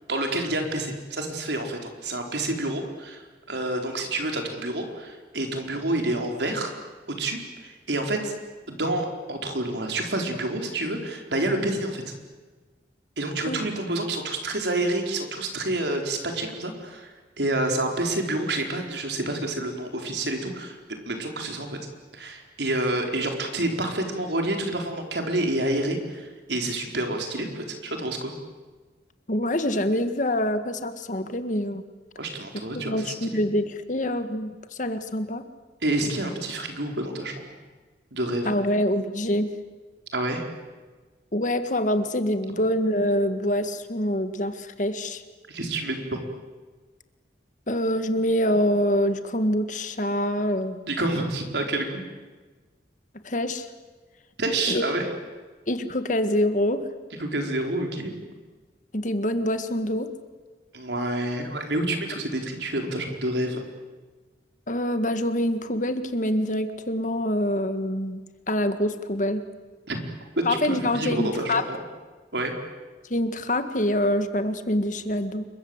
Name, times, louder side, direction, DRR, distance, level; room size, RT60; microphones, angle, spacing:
voice 1, 0.1-3.2 3.5-6.7 7.1-8.3 8.7-12.0 13.2-20.8 21.1-21.8 22.1-28.3 32.2-33.4 35.8-37.3 38.1-38.6 40.1-40.4 45.5-46.2 50.9-52.0 54.4-55.1 57.2-58.1 60.7-63.6 69.9-70.0 70.6-71.8 72.3-72.5, right 1 dB, 80° right, 3 dB, 4.6 m, -28 dB
voice 2, 29.3-31.8 32.7-35.4 38.5-39.5 41.3-45.2 47.7-50.8 53.2-53.7 54.7-54.8 55.7-56.8 58.9-60.1 64.7-69.5 70.5-71.6 73.1-75.5, left 1 dB, 45° left, 9 dB, 1.8 m, -25 dB
28.0 x 23.0 x 8.1 m, 1.3 s
head